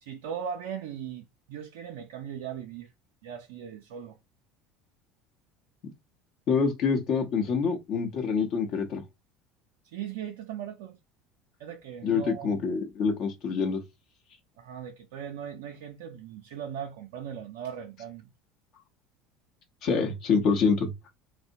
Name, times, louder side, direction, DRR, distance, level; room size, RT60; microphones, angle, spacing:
voice 1, 0.0-2.9 3.2-4.2 9.8-11.0 11.6-12.5 14.6-18.3, right 8 dB, 70° right, 0.3 m, -38 dB
voice 2, 6.5-9.0 12.0-13.8 19.8-20.9, left 5 dB, 55° left, 0.7 m, -26 dB
2.7 x 2.0 x 2.6 m
hypercardioid pair, 75°, 0 cm